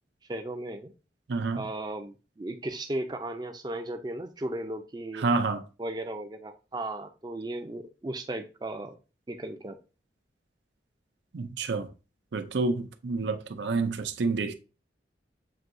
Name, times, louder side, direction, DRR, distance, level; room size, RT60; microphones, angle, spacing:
voice 1, 0.3-0.9 1.6-5.2 5.8-9.0 9.3-9.8, right 1 dB, 25° right, 0.5 m, -36 dB
voice 2, 1.3-1.6 5.2-5.6 11.3-11.9 12.3-14.5, right 3 dB, 80° right, 0.5 m, -28 dB
7.4 x 2.7 x 2.6 m
head